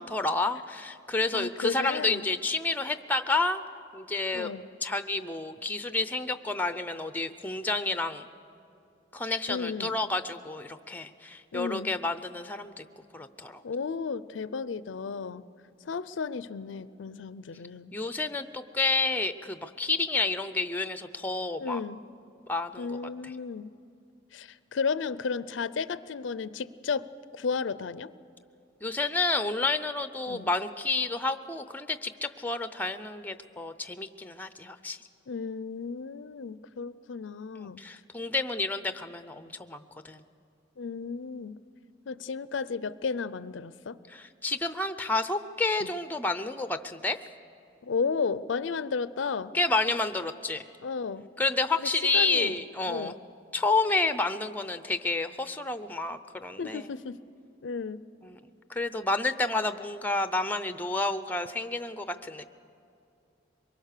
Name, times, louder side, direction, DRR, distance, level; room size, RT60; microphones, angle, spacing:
voice 1, 0.0-3.6 3.9-4.5 4.8-8.3 9.1-12.8 13.1-13.6 17.9-21.8 22.5-23.0 23.2-23.3 28.8-35.0 37.6-40.2 44.1-47.2 49.5-50.6 51.4-53.1 53.5-56.9 58.2-58.4 58.7-62.5, left 3 dB, 10° left, 11 dB, 0.6 m, -30 dB
voice 2, 1.3-2.3 4.3-4.6 9.5-10.0 11.5-11.9 13.6-15.5 15.9-17.9 21.6-22.0 22.8-23.7 24.3-27.1 27.3-28.1 30.3-30.5 35.3-37.8 40.8-41.6 42.1-44.0 45.8-45.9 47.8-49.5 50.8-51.3 51.8-51.9 52.1-52.5 52.9-53.2 56.6-57.2 57.6-58.0, left 5 dB, 75° left, 16 dB, 0.5 m, -33 dB
24.0 x 22.0 x 6.6 m, 2.6 s
head